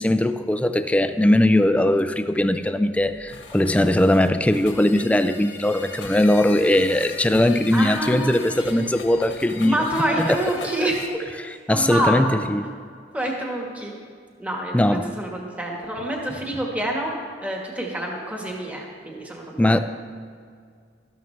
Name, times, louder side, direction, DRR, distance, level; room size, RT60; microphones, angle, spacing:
voice 1, 0.0-9.8 10.2-10.4 11.7-12.7 14.7-15.0 19.6-19.8, left 1 dB, 5° left, 10 dB, 0.4 m, -20 dB
sound 1, 3.0-11.1, left 4 dB, 90° left, 1.5 m, -39 dB
voice 2, 7.7-8.6 9.6-11.0 11.7-12.4 13.1-13.9 14.4-14.8 15.2-17.1 17.4-19.8, right 1 dB, 10° right, -1 dB, 1.5 m, -27 dB
13.0 x 13.0 x 3.3 m, 2.1 s
head